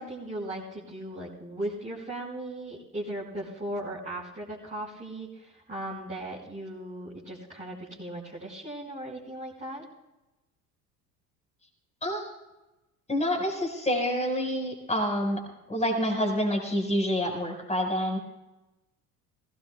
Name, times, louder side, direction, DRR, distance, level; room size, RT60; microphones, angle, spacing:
voice 1, 0.0-9.8, right 1 dB, 15° right, -7 dB, 4.8 m, -37 dB
voice 2, 13.1-15.4 15.7-18.2, equal, 15° left, 1 dB, 5.0 m, -27 dB
21.0 x 18.0 x 2.3 m, 1.0 s
hypercardioid pair, 65°, 47 cm